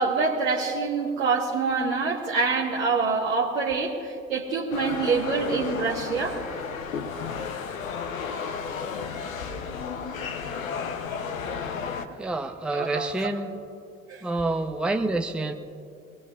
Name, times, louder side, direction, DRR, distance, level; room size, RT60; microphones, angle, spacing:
voice 1, 0.0-6.4 12.7-13.1 14.1-14.2, right 4 dB, 80° right, -7 dB, 1.5 m, -26 dB
sound 1, 4.7-12.1, left 6 dB, 85° left, 0.9 m, -33 dB
voice 2, 12.2-13.6 14.2-15.5, right 2 dB, ahead, 5 dB, 0.8 m, -28 dB
23.0 x 19.5 x 2.5 m, 2.5 s
figure-of-eight pair, 50°, 40 cm